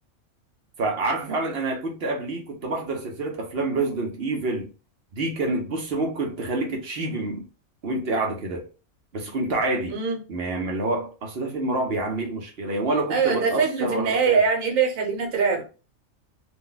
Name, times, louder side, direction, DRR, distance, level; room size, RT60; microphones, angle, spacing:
voice 1, 0.8-4.7 5.1-7.5 7.8-8.6 9.1-10.0 10.3-14.4, right 2 dB, 55° right, 0.8 m, -27 dB
voice 2, 9.9-10.2 13.1-15.6, right 5 dB, 85° right, 1.2 m, -22 dB
2.5 x 2.2 x 3.8 m
omnidirectional pair, 1.4 m